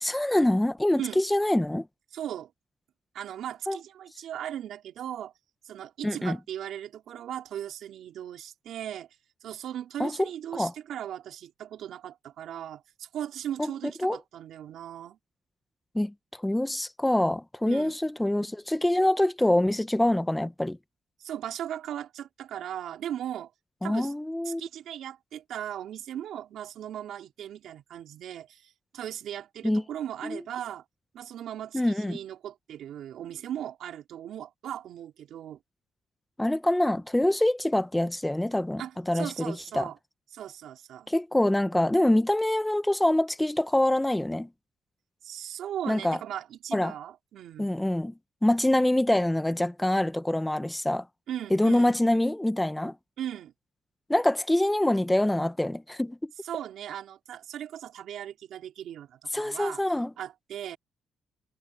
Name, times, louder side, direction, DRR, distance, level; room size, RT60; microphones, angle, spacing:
voice 1, 0.0-1.8 3.7-3.8 6.0-6.4 10.0-10.2 10.5-10.7 13.6-13.7 14.0-14.2 15.9-16.1 16.4-20.8 23.8-24.6 29.6-29.8 30.2-30.4 31.7-32.2 36.4-39.9 41.1-44.5 45.9-46.2 46.7-46.9 47.6-48.1 48.4-51.0 51.5-52.9 54.1-56.2 59.3-60.1, left 1 dB, 10° left, 1.0 m, -25 dB
voice 2, 2.1-2.5 3.1-5.3 5.6-9.1 9.4-15.2 17.6-18.0 21.2-23.5 23.8-24.1 24.4-30.8 31.1-35.6 38.8-40.0 40.3-41.1 45.2-47.7 51.3-52.0 53.2-53.5 56.4-59.8 60.2-60.8, right 10 dB, 80° right, 4.5 m, -38 dB
cardioid pair, 90°, 0 cm